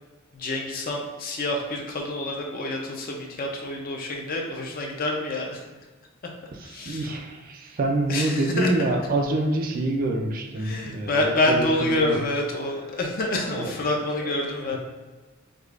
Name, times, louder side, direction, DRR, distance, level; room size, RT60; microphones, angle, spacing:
voice 1, 0.3-5.6 6.6-7.2 8.1-8.9 10.6-14.8, left 2 dB, 40° left, 1 dB, 0.5 m, -27 dB
voice 2, 6.6-12.2 13.5-13.7 14.4-14.8, right 2 dB, 40° right, 3 dB, 0.4 m, -27 dB
4.9 x 2.3 x 2.4 m, 1.2 s
head